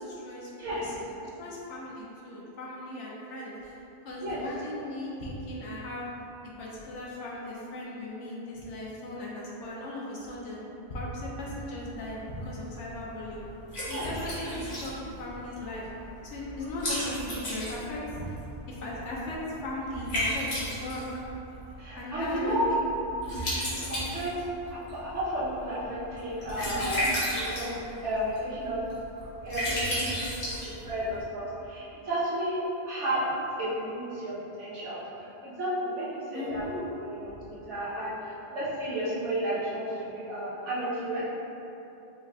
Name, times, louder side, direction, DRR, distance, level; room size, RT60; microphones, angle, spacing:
voice 1, 0.0-3.8 4.0-6.1 6.4-13.5 13.9-15.9 16.2-18.4 18.7-21.0 22.0-22.9 36.3-36.8 37.2-37.3, left 1 dB, 90° left, -5 dB, 1.2 m, -37 dB
voice 2, 0.5-0.9 4.2-4.4 13.9-14.1 21.8-22.7 23.8-24.4 24.7-27.2 27.5-28.9 29.4-30.5 30.8-32.6 32.9-33.2 33.6-35.0 35.4-36.6 37.0-37.4 37.7-41.2, right 1 dB, 80° right, -10 dB, 1.5 m, -32 dB
Liquid, 11.8-31.2, equal, 65° left, 1.5 m, -35 dB
5.1 x 2.5 x 3.3 m, 3.0 s
omnidirectional pair, 1.2 m